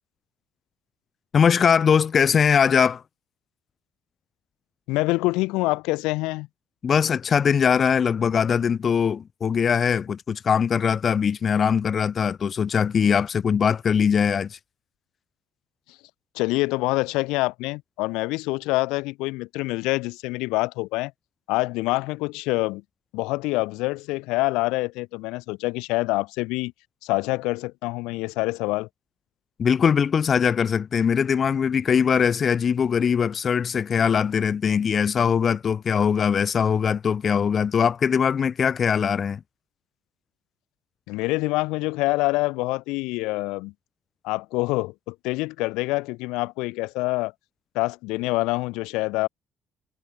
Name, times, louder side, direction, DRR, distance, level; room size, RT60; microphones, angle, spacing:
voice 1, 1.3-3.0 6.8-14.6 29.6-39.4, left 7 dB, 40° left, 1.3 m, -21 dB
voice 2, 4.9-6.5 16.3-21.1 21.5-22.8 23.1-26.7 27.0-28.9 41.1-43.7 44.2-47.3 47.7-49.3, left 22 dB, 90° left, 2.1 m, -26 dB
cardioid pair, 95°, 0 cm